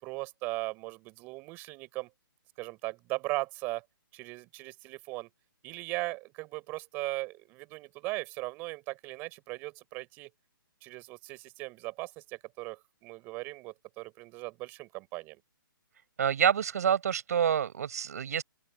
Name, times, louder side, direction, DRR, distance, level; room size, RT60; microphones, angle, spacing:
voice 1, 0.0-2.1 2.6-3.8 4.1-5.3 5.6-10.3 10.8-15.4, right 23 dB, 15° right, 6.4 m, -38 dB
voice 2, 16.2-18.4, right 8 dB, 45° right, 5.8 m, -27 dB
open air
hypercardioid pair, 175°, 12 cm